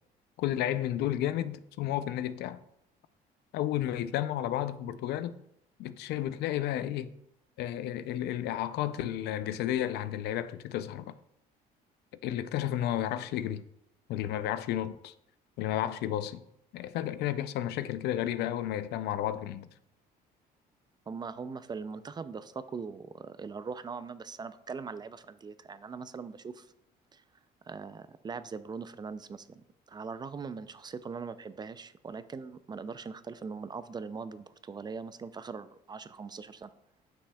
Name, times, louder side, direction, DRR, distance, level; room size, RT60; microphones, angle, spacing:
voice 1, 0.4-2.6 3.5-5.4 5.8-7.1 7.6-11.2 12.2-13.6 14.1-15.1 15.6-16.4 16.7-19.7, left 12 dB, 75° left, 0.4 m, -32 dB
voice 2, 21.1-26.7 27.1-27.2 27.6-36.7, right 5 dB, 25° right, 0.4 m, -41 dB
9.8 x 6.1 x 2.3 m
cardioid pair, 110°, 17 cm